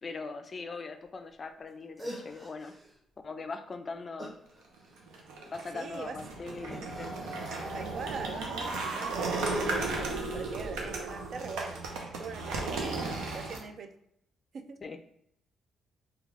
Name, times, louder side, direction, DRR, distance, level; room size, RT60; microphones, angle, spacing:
voice 1, 0.0-2.7 3.2-4.3 5.5-7.1 14.8-15.0, left 4 dB, 40° left, 8 dB, 0.3 m, -40 dB
sound 1, 1.7-1.8 2.0-3.0 4.2-5.2 6.7-7.5, equal, 25° right, 1.2 m, -45 dB
sound 2, 5.0-13.6, right 3 dB, 90° right, 0.7 m, -35 dB
voice 2, 5.7-6.2 7.7-11.8 12.2-13.9 14.5-14.8, right 5 dB, 55° right, 7 dB, 0.4 m, -42 dB
3.1 x 2.3 x 3.5 m, 0.73 s
cardioid pair, 90°, 0 cm